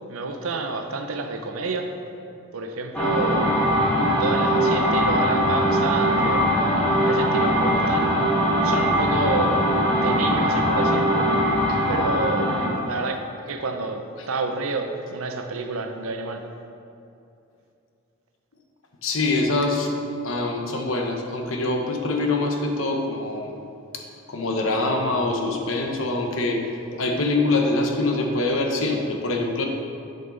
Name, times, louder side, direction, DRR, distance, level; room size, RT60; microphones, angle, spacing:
voice 1, 0.1-2.0 2.5-3.5 4.2-6.5 7.0-8.1 8.6-9.6 9.9-11.1 11.9-13.2 13.5-16.5, right 3 dB, 85° right, 5 dB, 0.7 m, -29 dB
sound 1, 2.9-12.8, equal, 5° left, 1.8 m, -21 dB
voice 2, 19.0-19.9 20.2-23.5 23.9-26.6 27.0-29.6, left 2 dB, 70° left, 2 dB, 1.0 m, -24 dB
10.5 x 5.3 x 3.9 m, 2.6 s
head